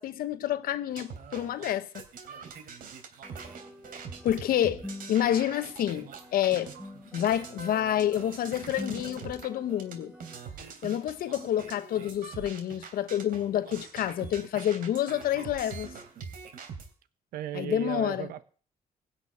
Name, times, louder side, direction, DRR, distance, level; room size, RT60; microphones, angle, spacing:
voice 1, 0.0-1.9 4.2-4.8 5.1-6.7 7.1-10.1 10.8-15.9 17.5-18.3, left 11 dB, 75° left, 1.1 m, -28 dB
sound 1, 0.9-10.0 10.2-16.9, right 6 dB, 70° right, 3.1 m, -44 dB
sound 2, 3.2-10.4, left 1 dB, 5° right, 3.2 m, -46 dB
voice 2, 17.3-18.4, right 13 dB, 85° right, 1.1 m, -35 dB
16.0 x 6.2 x 9.6 m
cardioid pair, 75°, 15 cm